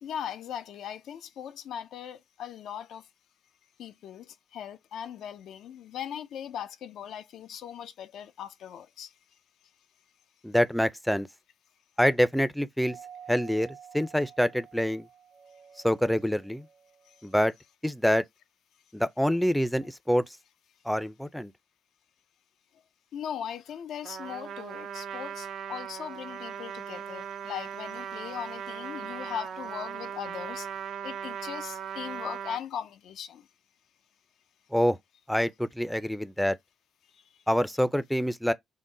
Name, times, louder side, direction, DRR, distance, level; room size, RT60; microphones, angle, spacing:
voice 1, 0.0-3.1 3.8-9.1 17.1-17.3 23.1-33.5 37.1-37.4, left 9 dB, 75° left, 0.4 m, -39 dB
voice 2, 10.4-11.3 12.0-13.0 13.3-15.1 15.8-16.7 17.2-17.5 17.8-18.2 18.9-20.2 20.9-21.5 34.7-35.0 35.3-36.6 37.5-38.5, equal, 5° left, 0.4 m, -26 dB
Doorbell, 12.8-17.6, right 8 dB, 90° right, 1.1 m, -51 dB
Trumpet, 24.0-32.6, right 8 dB, 70° right, 0.5 m, -38 dB
3.8 x 2.0 x 3.7 m
cardioid pair, 80°, 0 cm